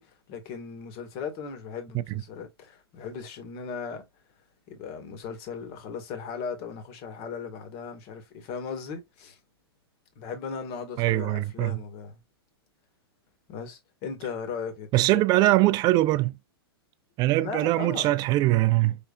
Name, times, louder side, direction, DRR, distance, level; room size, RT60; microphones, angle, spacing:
voice 1, 0.0-4.0 4.7-9.4 10.2-12.2 13.5-15.6 17.3-18.2, left 5 dB, 45° left, 2.0 m, -37 dB
voice 2, 11.0-11.8 14.9-16.4 17.2-19.0, right 17 dB, 30° right, 0.4 m, -22 dB
5.7 x 3.3 x 2.5 m
hypercardioid pair, 115°, 13 cm